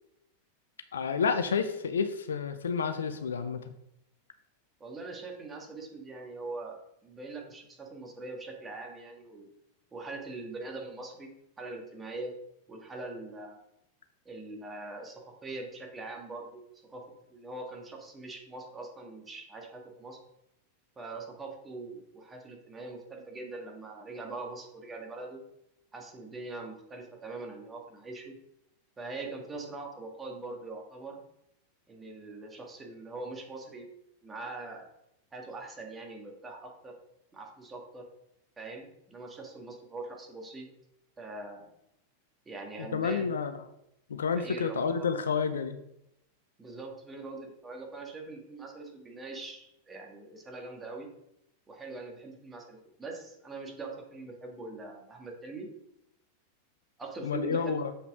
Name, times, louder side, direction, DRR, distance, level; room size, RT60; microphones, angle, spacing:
voice 1, 0.9-3.7 42.8-43.5 44.1-45.8 57.2-57.9, left 6 dB, 65° left, 10 dB, 0.6 m, -30 dB
voice 2, 4.8-9.5 9.9-11.3 11.6-12.3 12.7-13.6 14.2-17.0 17.3-20.2 20.9-25.4 25.9-28.3 29.0-31.2 31.9-33.9 34.2-34.9 35.3-36.9 37.3-38.0 38.6-40.7 41.2-41.7 42.4-43.3 44.4-45.1 46.6-51.1 51.7-55.7 57.0-57.8, right 3 dB, 15° right, 1 dB, 1.7 m, -42 dB
7.3 x 5.7 x 3.6 m, 0.81 s
figure-of-eight pair, 90°, 0 cm